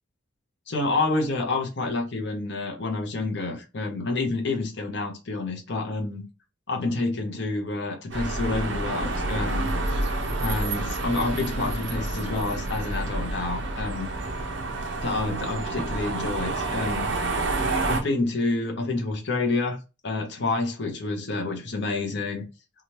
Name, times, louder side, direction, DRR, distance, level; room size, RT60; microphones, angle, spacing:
voice 1, 0.7-6.2 6.7-9.7 10.4-14.1 15.0-17.1 17.9-19.8 20.0-22.4, left 3 dB, 55° left, 0.7 m, -28 dB
sound 1, 8.1-18.0, right 2 dB, 60° right, 0.6 m, -29 dB
2.8 x 2.3 x 3.0 m
head